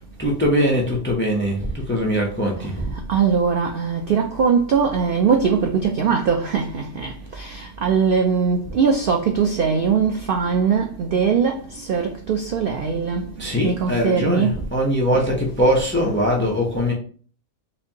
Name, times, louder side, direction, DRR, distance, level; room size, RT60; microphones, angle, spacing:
voice 1, 0.2-2.9 13.4-16.9, equal, 20° left, 0.3 m, -21 dB
voice 2, 2.6-14.6 15.1-15.3 16.8-16.9, right 6 dB, 85° right, 0.4 m, -21 dB
4.1 x 2.6 x 2.8 m
omnidirectional pair, 1.5 m